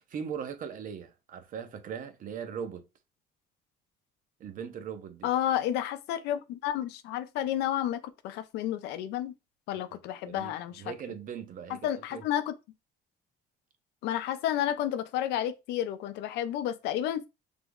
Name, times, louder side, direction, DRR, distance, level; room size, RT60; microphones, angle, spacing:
voice 1, 0.0-2.8 4.4-5.3 9.9-10.0 10.2-12.2, right 7 dB, 55° right, 0.6 m, -39 dB
voice 2, 5.2-9.3 9.7-10.8 11.8-12.5 14.0-17.3, left 11 dB, 85° left, 0.4 m, -31 dB
3.3 x 2.0 x 3.4 m
cardioid pair, 110°, 17 cm